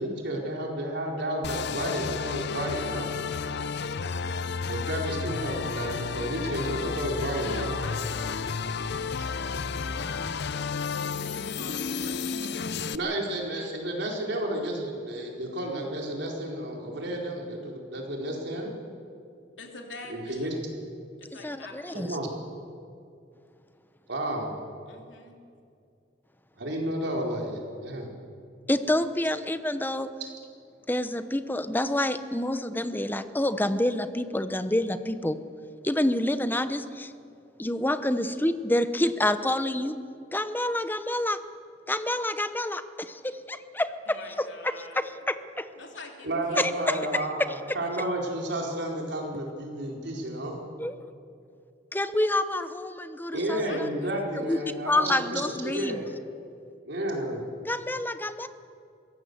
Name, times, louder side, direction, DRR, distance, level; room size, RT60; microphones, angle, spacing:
voice 1, 0.0-3.1 4.7-7.7 12.9-18.8 20.1-20.5 21.9-22.3 24.1-24.6 26.6-28.1 46.2-50.6 53.3-56.0 56.8-57.4, right 1 dB, 65° right, 0 dB, 4.3 m, -31 dB
sound 1, 1.4-13.0, left 5 dB, 65° left, 0.7 m, -32 dB
voice 2, 7.4-10.9 11.2-13.0 19.6-20.5 21.2-22.0 24.9-25.4 44.1-45.0 45.8-47.2 47.8-47.9 53.3-54.2 55.6-56.2, left 3 dB, 80° left, 2 dB, 3.2 m, -46 dB
voice 3, 21.4-22.1 28.7-30.1 30.9-35.4 35.8-37.1 37.6-40.0 40.3-41.4 41.9-44.2 45.3-45.7 46.6-47.2 50.8-50.9 51.9-53.9 54.5-54.6 54.8-56.0 57.7-58.5, left 1 dB, 10° left, 11 dB, 0.9 m, -28 dB
22.5 x 16.5 x 8.1 m, 2.4 s
head